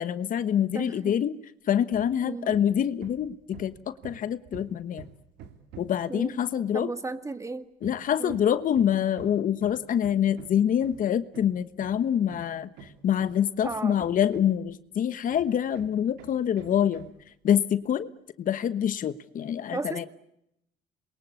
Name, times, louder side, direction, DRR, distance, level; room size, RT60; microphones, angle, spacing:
voice 1, 0.0-1.4 1.7-5.1 5.8-6.9 7.8-17.1 17.4-18.1 18.4-20.1, left 9 dB, 50° left, 14 dB, 1.2 m, -26 dB
voice 2, 0.7-1.1 2.2-2.5 6.1-6.4 6.7-7.7 8.2-8.4 13.6-14.0 19.7-20.1, right 3 dB, 20° right, 11 dB, 1.8 m, -34 dB
Hammer, 1.9-2.2 2.5-6.1 7.8-14.7 15.3-17.2, right 7 dB, 85° right, 2.5 m, -48 dB
28.0 x 22.5 x 8.4 m, 0.80 s
cardioid pair, 110°, 17 cm